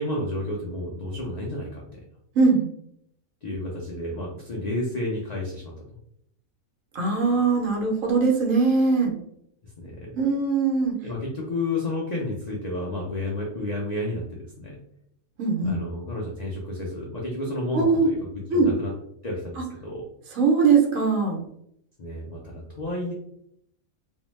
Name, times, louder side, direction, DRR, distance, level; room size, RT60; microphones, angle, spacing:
voice 1, 0.0-2.0 3.4-5.9 9.8-10.2 11.0-14.8 15.6-18.9 19.2-20.0 22.0-23.1, left 1 dB, 85° left, -3 dB, 0.3 m, -31 dB
voice 2, 6.9-9.1 10.1-10.9 15.4-15.8 17.7-18.1 18.5-18.7 20.3-21.4, right 4 dB, 70° right, 1 dB, 1.1 m, -21 dB
2.7 x 2.1 x 3.1 m, 0.72 s
omnidirectional pair, 1.5 m